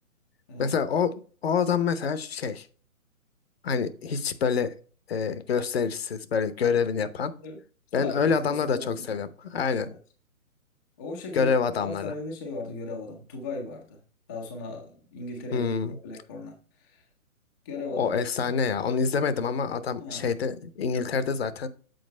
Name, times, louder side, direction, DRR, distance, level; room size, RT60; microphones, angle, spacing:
voice 1, 0.6-1.1 1.4-2.7 3.6-4.7 5.1-7.3 7.9-9.9 11.3-12.1 15.5-16.0 18.0-21.7, left 6 dB, 45° left, 13 dB, 0.9 m, -26 dB
voice 2, 8.0-9.2 9.7-10.0 11.0-14.0 14.3-17.1 17.6-18.1 20.0-20.3, left 3 dB, 15° left, 0 dB, 0.5 m, -38 dB
7.9 x 4.5 x 4.3 m, 0.39 s
figure-of-eight pair, 135°, 42 cm